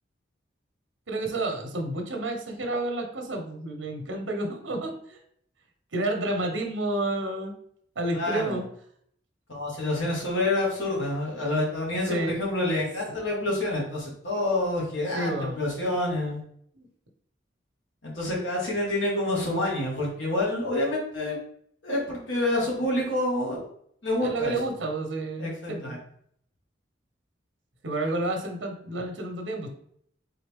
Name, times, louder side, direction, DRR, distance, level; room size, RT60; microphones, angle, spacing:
voice 1, 1.1-5.2 5.9-7.5 8.0-8.6 12.1-12.4 15.1-15.6 16.7-16.8 24.2-26.0 27.8-29.7, right 2 dB, 80° right, 3 dB, 0.9 m, -30 dB
voice 2, 8.1-8.6 9.5-16.4 18.0-21.4 21.8-23.7 24.0-24.6 25.4-26.0, left 1 dB, 85° left, -3 dB, 1.9 m, -28 dB
3.9 x 3.8 x 3.5 m, 0.66 s
head